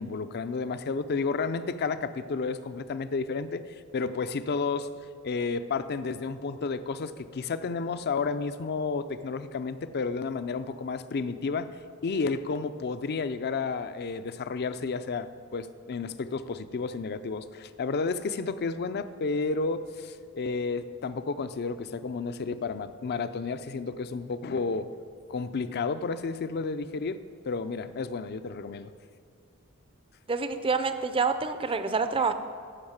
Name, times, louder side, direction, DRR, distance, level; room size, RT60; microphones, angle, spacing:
voice 1, 0.0-3.6 3.9-4.9 5.2-11.8 12.0-24.9 25.3-28.9, left 4 dB, 50° left, 12 dB, 0.5 m, -31 dB
voice 2, 30.3-32.3, right 4 dB, 25° right, 10 dB, 0.5 m, -27 dB
12.0 x 5.5 x 7.3 m, 2.3 s
head